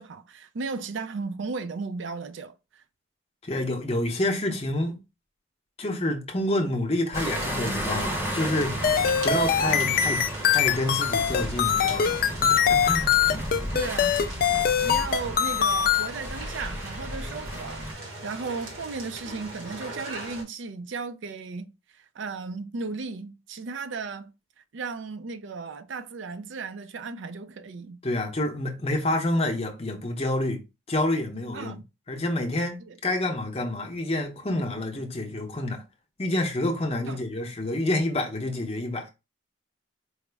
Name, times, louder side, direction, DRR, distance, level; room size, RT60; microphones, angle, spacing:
voice 1, 0.0-2.8 13.7-14.5 14.8-24.3 24.7-28.0 31.5-31.8 32.9-33.0 37.1-37.2, right 4 dB, 60° right, 0.4 m, -35 dB
voice 2, 3.4-5.0 5.8-13.2 28.0-30.6 30.9-31.8 32.1-35.8 36.2-39.1, left 1 dB, 30° left, 0.7 m, -28 dB
sound 1, 7.1-17.9, equal, 10° right, 0.7 m, -34 dB
sound 2, 7.1-20.4, right 2 dB, 80° right, 1.4 m, -41 dB
sound 3, 8.8-16.1, left 8 dB, 45° left, 0.3 m, -23 dB
4.7 x 2.0 x 3.3 m
head